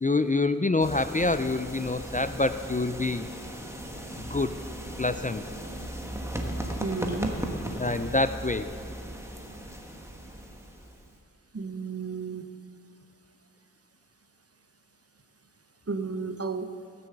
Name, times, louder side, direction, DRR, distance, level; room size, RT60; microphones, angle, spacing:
voice 1, 0.0-3.3 4.3-4.5 5.0-5.4 7.8-8.7, left 2 dB, 25° left, 11 dB, 0.4 m, -26 dB
sound 1, 0.8-11.2, right 1 dB, 10° right, 1.4 m, -37 dB
voice 2, 6.8-7.3 11.5-12.5 15.9-16.7, right 4 dB, 50° right, 8 dB, 0.8 m, -32 dB
17.0 x 7.0 x 7.8 m, 2.4 s
wide cardioid pair, 40°, 31 cm